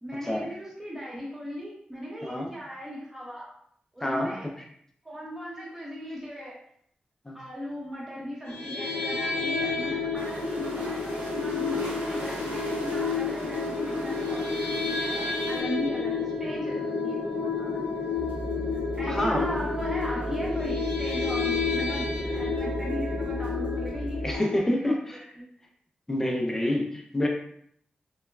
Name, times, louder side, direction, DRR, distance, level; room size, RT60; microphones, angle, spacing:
voice 1, 0.0-3.5 3.9-4.5 5.0-6.6 7.3-18.2 18.9-25.5 26.2-26.3 26.6-26.8, equal, 15° right, -5 dB, 0.8 m, -37 dB
voice 2, 2.2-2.5 4.0-4.4 7.3-7.4 19.1-19.7 24.2-25.3 26.1-27.3, left 1 dB, 15° left, 1 dB, 0.4 m, -27 dB
sound 1, 8.5-24.6, left 4 dB, 70° left, 0.5 m, -30 dB
sound 2, 10.1-15.6, right 1 dB, 85° right, 1.0 m, -41 dB
sound 3, 18.1-24.4, equal, 50° right, 0.7 m, -36 dB
2.9 x 2.1 x 2.2 m, 0.68 s
wide cardioid pair, 120°, 3 cm